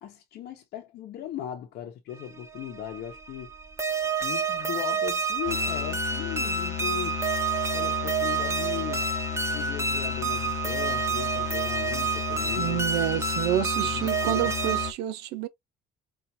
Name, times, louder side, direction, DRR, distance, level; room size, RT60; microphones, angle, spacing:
voice 1, 0.0-3.5 4.2-7.2 7.7-9.1 9.5-12.9 13.5-13.6 13.9-14.5, left 11 dB, 75° left, 0.9 m, -38 dB
sound 1, 2.2-14.9, right 5 dB, 15° right, 0.6 m, -29 dB
sound 2, 5.5-14.9, left 11 dB, 40° left, 0.5 m, -35 dB
voice 2, 12.6-15.5, right 13 dB, 90° right, 0.7 m, -28 dB
4.7 x 2.5 x 2.7 m
cardioid pair, 110°, 17 cm